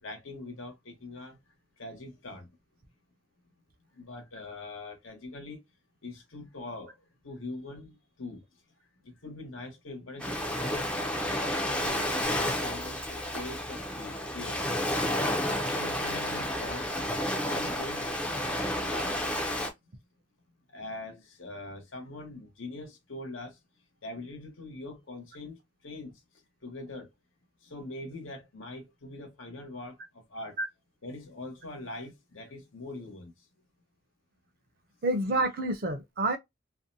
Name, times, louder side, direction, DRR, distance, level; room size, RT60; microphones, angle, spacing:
voice 1, 0.0-1.4 1.8-2.5 3.9-5.6 6.0-7.0 7.2-8.4 9.0-10.9 11.7-14.7 15.7-17.0 17.4-19.1 20.7-23.6 24.0-26.2 26.6-27.1 27.6-30.6 31.0-33.3, left 2 dB, 85° left, 1.0 m, -43 dB
Ocean, 10.2-19.7, left 1 dB, 5° left, 0.4 m, -31 dB
voice 2, 35.0-36.4, right 2 dB, 45° right, 0.5 m, -28 dB
2.5 x 2.1 x 2.6 m
head